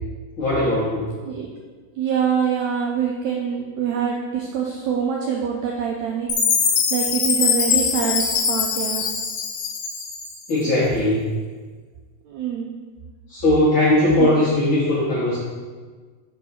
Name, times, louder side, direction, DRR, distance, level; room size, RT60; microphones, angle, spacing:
voice 1, 0.4-1.1 10.5-11.3 13.3-15.4, left 1 dB, 50° left, -8 dB, 1.6 m, -19 dB
voice 2, 2.0-6.3 6.6-9.0 12.2-12.7 14.2-14.3, right 7 dB, 85° right, -1 dB, 1.6 m, -25 dB
Chime, 6.3-10.5, left 6 dB, 85° left, 2.5 m, -22 dB
5.4 x 4.6 x 5.8 m, 1.4 s
omnidirectional pair, 3.9 m